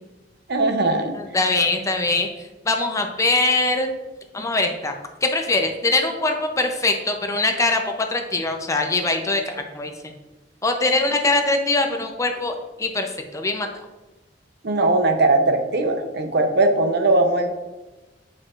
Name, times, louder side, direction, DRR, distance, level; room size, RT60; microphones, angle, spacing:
voice 1, 0.5-1.1 14.6-17.5, right 2 dB, 60° right, 6 dB, 0.7 m, -19 dB
voice 2, 1.1-2.3 2.7-3.9 4.3-4.9 5.2-9.9 10.6-13.1 13.3-13.7, left 2 dB, 15° left, 4 dB, 0.5 m, -22 dB
8.6 x 4.7 x 2.4 m, 1.1 s
head